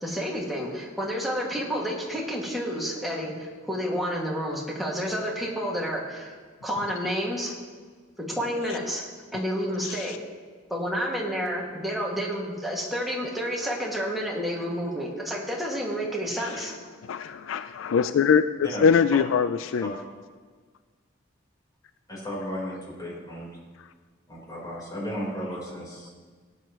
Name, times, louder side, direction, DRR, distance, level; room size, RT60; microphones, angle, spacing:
voice 1, 0.0-6.4 6.6-7.5 8.3-9.0 9.3-10.1 10.7-16.7, equal, ahead, -4 dB, 2.1 m, -30 dB
voice 2, 9.8-10.2 16.3-16.7 17.0-19.9 23.8-23.9, left 6 dB, 80° left, 12 dB, 0.4 m, -24 dB
voice 3, 22.1-23.5 24.3-26.1, equal, 20° left, -4 dB, 4.0 m, -34 dB
18.0 x 9.5 x 3.1 m, 1.5 s
head